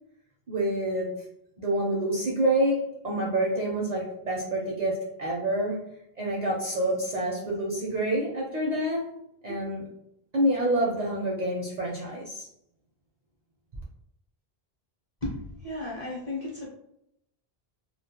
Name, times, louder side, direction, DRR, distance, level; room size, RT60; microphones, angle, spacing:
voice 1, 0.5-1.2 1.6-5.8 6.2-9.1 9.4-9.9 10.3-12.5, right 1 dB, 55° right, -4 dB, 0.5 m, -27 dB
voice 2, 15.2-16.7, left 2 dB, 40° left, -4 dB, 0.8 m, -34 dB
2.2 x 2.0 x 2.7 m, 0.76 s
omnidirectional pair, 1.0 m